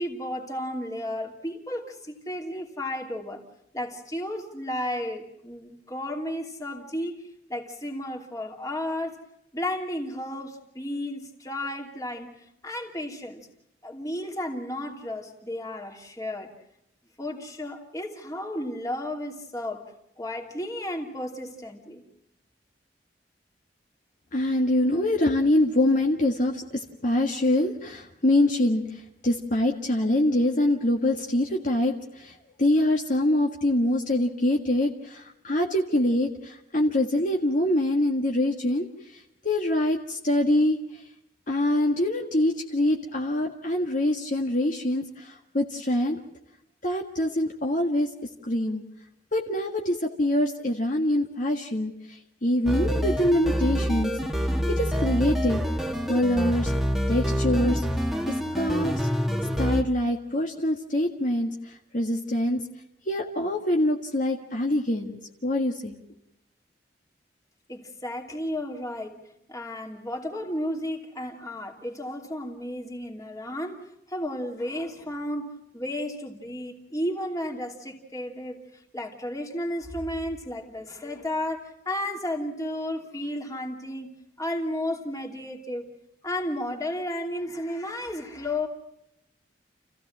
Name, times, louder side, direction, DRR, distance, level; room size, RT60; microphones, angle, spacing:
voice 1, 0.0-3.4 3.7-7.2 7.5-9.2 9.5-13.5 13.8-16.5 17.2-22.0 67.7-69.2 69.5-73.8 74.1-78.6 78.9-84.1 84.4-85.9 86.2-88.7, left 1 dB, 20° left, 2 dB, 2.8 m, -33 dB
voice 2, 24.3-38.9 39.1-41.0 41.5-46.2 46.8-48.1 48.4-48.8 49.3-54.2 54.7-55.6 56.1-56.7 57.1-57.8 58.3-59.1 59.6-62.6 63.1-65.2 65.4-66.0, left 1 dB, 50° left, 1 dB, 1.7 m, -25 dB
sound 1, 52.7-59.8, equal, ahead, 1.4 m, -26 dB
29.0 x 15.5 x 7.5 m, 0.82 s
head